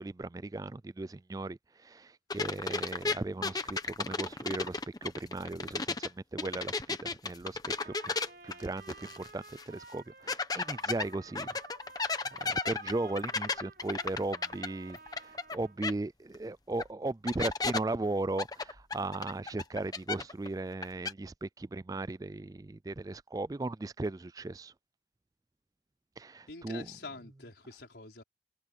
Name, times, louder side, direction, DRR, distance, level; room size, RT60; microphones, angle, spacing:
voice 1, 0.0-8.1 8.4-11.5 12.3-24.7 26.2-26.9, right 2 dB, 20° right, 0.3 m, -37 dB
sound 1, 2.3-6.1 6.4-9.3 9.6-9.7 10.3-15.6 15.8-15.9 16.8-16.9 17.3-17.8 18.4-20.5 20.7-21.1, left 4 dB, 20° left, 1.0 m, -34 dB
Trumpet, 7.7-15.8, right 4 dB, 55° right, 5.7 m, -52 dB
voice 2, 26.5-28.2, left 3 dB, 70° left, 4.6 m, -46 dB
head